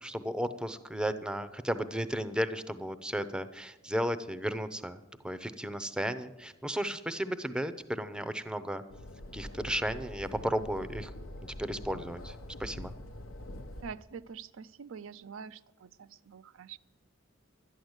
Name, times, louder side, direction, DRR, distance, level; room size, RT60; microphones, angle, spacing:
voice 1, 0.0-8.8 9.3-11.1 11.4-12.9, equal, 5° right, 12 dB, 0.6 m, -34 dB
sound 1, 8.9-13.9, left 1 dB, 85° left, 0.9 m, -44 dB
voice 2, 13.8-16.8, right 6 dB, 80° right, 12 dB, 0.5 m, -45 dB
12.0 x 10.5 x 8.0 m, 1.0 s
head